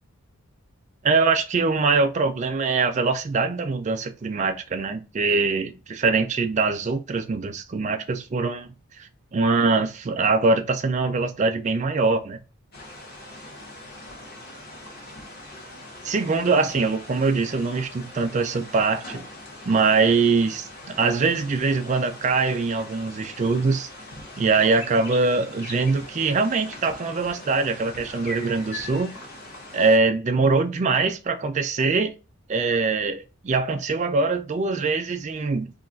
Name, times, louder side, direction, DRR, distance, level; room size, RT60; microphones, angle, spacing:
voice 1, 1.0-8.7 9.0-12.4 16.0-19.2 19.7-23.9 24.4-29.1 29.7-32.1 32.5-35.7, right 4 dB, 35° right, 0.4 m, -23 dB
sound 1, 12.7-30.0, left 1 dB, 45° left, 0.8 m, -41 dB
2.5 x 2.4 x 3.8 m
head